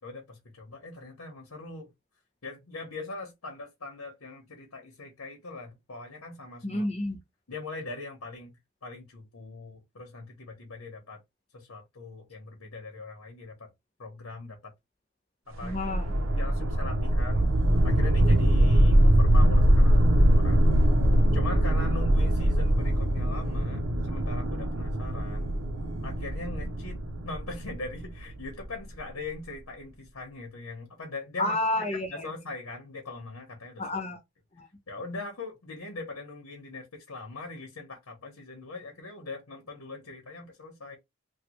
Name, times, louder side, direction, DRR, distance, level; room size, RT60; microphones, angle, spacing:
voice 1, 0.0-1.9 2.4-6.9 7.5-8.5 8.8-11.2 11.5-13.7 14.0-14.7 15.5-15.8 16.3-17.5 17.8-20.6 21.3-25.5 26.0-27.0 27.2-33.8 34.9-41.0, left 3 dB, 80° left, 1.0 m, -41 dB
voice 2, 6.6-7.2 15.6-16.1 31.4-32.3 33.8-34.2 34.5-34.7, left 1 dB, 30° left, 0.9 m, -30 dB
sound 1, 15.6-28.6, right 1 dB, 65° right, 0.6 m, -23 dB
3.2 x 2.3 x 3.0 m
head